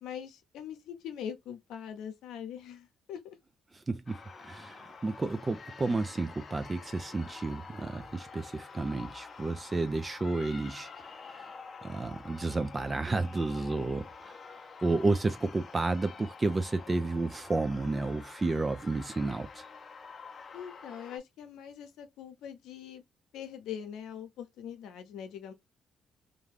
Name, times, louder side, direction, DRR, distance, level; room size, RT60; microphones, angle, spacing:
voice 1, 0.0-3.4 20.5-23.0 23.3-25.5, left 9 dB, 85° left, 0.7 m, -42 dB
voice 2, 3.7-11.5 11.8-14.4 14.8-19.7, right 3 dB, 25° right, 0.4 m, -31 dB
sound 1, 4.1-21.2, left 5 dB, 40° left, 0.6 m, -48 dB
2.5 x 2.3 x 3.3 m
cardioid pair, 90°, 0 cm